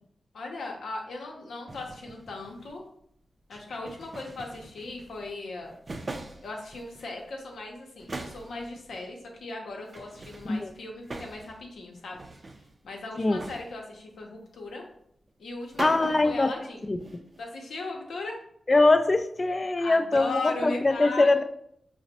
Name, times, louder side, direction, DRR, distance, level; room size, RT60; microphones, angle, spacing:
voice 1, 0.3-2.8 3.5-5.8 6.4-12.2 12.8-14.8 15.4-16.9 17.4-18.4 19.8-21.4, left 2 dB, 85° left, 1 dB, 0.7 m, -38 dB
sound 1, 1.7-2.8 3.5-5.3 5.6-7.2 7.5-7.6 8.0-9.0 9.9-11.7 11.9-12.7 13.3-14.0 15.4-15.5 15.7-16.5 16.8-17.4, right 2 dB, 45° right, 0.4 m, -42 dB
voice 2, 15.8-16.5 16.9-17.0 18.7-21.4, left 2 dB, 40° left, 9 dB, 0.3 m, -22 dB
4.9 x 2.1 x 2.8 m, 0.70 s
cardioid pair, 45°, 0 cm